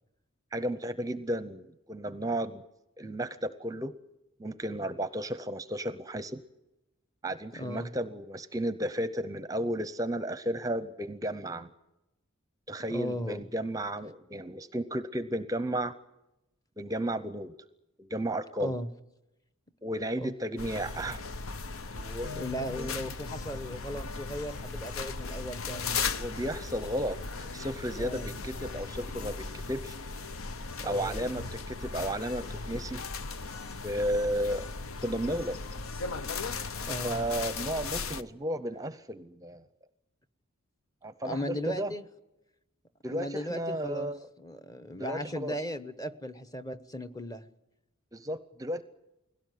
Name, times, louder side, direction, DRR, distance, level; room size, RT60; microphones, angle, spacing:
voice 1, 0.5-2.6 3.0-3.9 4.4-6.4 7.2-11.7 12.7-15.9 16.8-17.5 18.0-18.8 19.8-21.3 21.9-22.3 22.8-22.9 26.1-29.9 30.8-33.0 33.8-34.6 35.0-35.6 37.0-39.6 41.0-41.9 43.0-44.3 45.0-45.6 48.1-48.8, right 1 dB, 15° right, 13 dB, 0.7 m, -33 dB
voice 2, 7.5-7.9 12.9-13.4 18.6-18.9 20.2-20.3 22.3-26.2 26.8-26.9 28.0-28.3 30.8-31.3 36.9-37.2 41.2-42.0 43.1-47.5, equal, 15° left, 12 dB, 1.0 m, -37 dB
sound 1, 20.6-38.2, left 4 dB, 80° left, 0.9 m, -37 dB
sound 2, 24.5-33.2, equal, 40° left, 5.8 m, -57 dB
21.0 x 17.0 x 9.3 m, 0.93 s
head